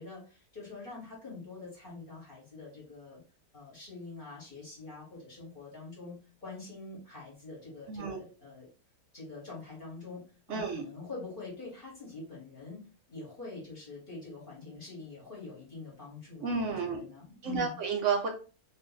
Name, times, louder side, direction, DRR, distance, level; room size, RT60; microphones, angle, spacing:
voice 1, 0.0-3.2 3.5-6.2 6.4-8.7 9.1-10.2 10.5-12.8 13.1-17.8, left 3 dB, 40° left, -4 dB, 1.2 m, -45 dB
voice 2, 7.9-8.2 10.5-10.8 16.4-17.0 17.4-18.3, right 5 dB, 65° right, 2 dB, 0.9 m, -31 dB
2.6 x 2.5 x 3.8 m, 0.36 s
omnidirectional pair, 1.6 m